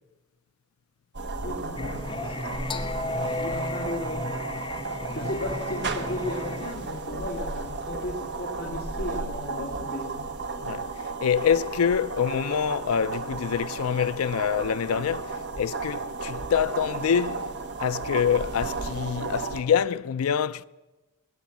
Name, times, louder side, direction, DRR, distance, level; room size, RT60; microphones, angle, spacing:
sound 1, 1.1-19.6, right 3 dB, 55° right, 1.2 m, -34 dB
voice 1, 1.3-4.4 5.1-10.3, left 1 dB, 45° left, 2.4 m, -36 dB
Singing, 1.8-6.7, left 2 dB, 25° left, 1.0 m, -33 dB
voice 2, 10.6-17.5 17.8-20.6, left 7 dB, 85° left, 0.4 m, -26 dB
21.0 x 9.6 x 7.2 m
head